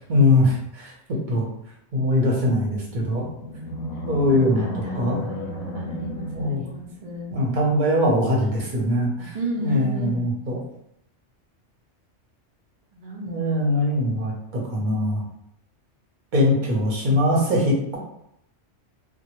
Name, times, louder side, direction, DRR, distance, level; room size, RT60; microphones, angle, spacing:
voice 1, 0.1-0.9 1.3-1.5 1.9-3.3 4.1-5.3 6.3-6.6 7.3-9.3 9.6-10.6 13.3-15.2 16.3-18.0, left 1 dB, 45° right, -3 dB, 0.7 m, -22 dB
Animal, 2.9-7.3, left 1 dB, 65° left, 0.8 m, -33 dB
voice 2, 4.6-7.5 9.3-10.2 12.9-13.4, equal, 70° right, -2 dB, 0.4 m, -33 dB
2.1 x 2.0 x 2.9 m, 0.78 s
omnidirectional pair, 1.3 m